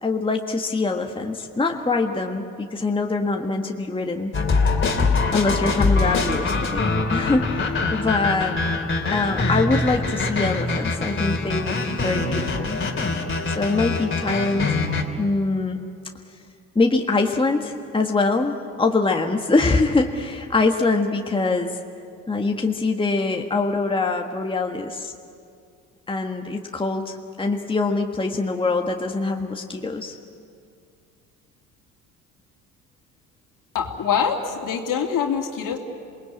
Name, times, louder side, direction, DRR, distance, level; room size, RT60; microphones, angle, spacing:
voice 1, 0.0-4.3 5.3-8.6 9.1-12.8 13.6-14.8 15.2-15.8 16.7-21.8 22.3-25.1 26.1-30.1, left 3 dB, 15° left, 2 dB, 1.6 m, -23 dB
sound 1, 4.3-15.0, left 3 dB, 30° left, 3.2 m, -23 dB
voice 2, 33.7-35.8, left 7 dB, 55° left, 2 dB, 3.1 m, -24 dB
27.0 x 20.0 x 8.5 m, 2.3 s
hypercardioid pair, 60°, 39 cm